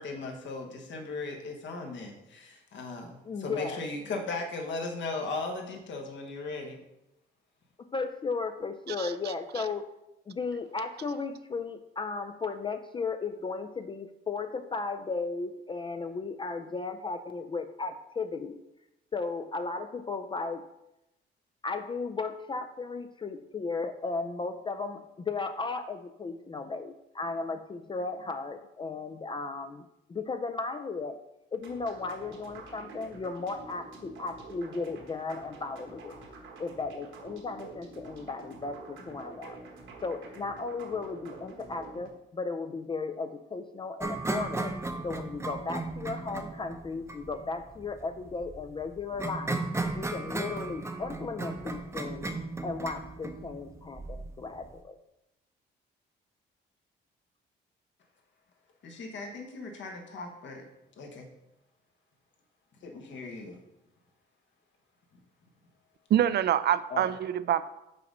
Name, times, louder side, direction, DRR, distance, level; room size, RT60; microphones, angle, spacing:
voice 1, 0.0-6.8 58.8-60.6 61.0-61.3 62.8-63.6 66.9-67.1, left 3 dB, 70° left, 3 dB, 1.3 m, -37 dB
voice 2, 3.2-3.8 7.9-9.9 10.3-18.6 19.1-20.6 21.6-29.8 30.1-31.2 31.5-36.2 36.6-39.6 40.0-44.8 45.0-49.6 49.9-52.3 52.6-55.0, left 4 dB, 25° left, 7 dB, 0.3 m, -35 dB
sound 1, 31.6-42.1, right 3 dB, 75° right, 1.4 m, -48 dB
sound 2, 44.0-54.8, right 2 dB, 15° right, 0.6 m, -36 dB
voice 3, 66.1-67.6, right 10 dB, 55° right, 15 dB, 0.4 m, -26 dB
5.6 x 4.0 x 5.3 m, 0.90 s
cardioid pair, 90°, 20 cm